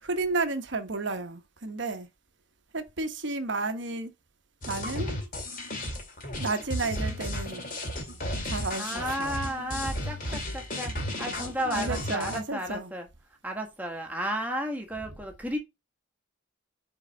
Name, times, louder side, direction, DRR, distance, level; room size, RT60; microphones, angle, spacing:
voice 1, 0.0-2.1 2.7-4.1 4.7-5.2 6.4-7.6 8.5-9.4 11.6-12.9, right 3 dB, 60° right, 1.0 m, -32 dB
sound 1, 4.6-12.4, left 1 dB, 40° left, 2.1 m, -34 dB
voice 2, 8.8-13.1 13.4-15.6, equal, 10° right, 1.4 m, -33 dB
5.0 x 4.7 x 5.3 m
head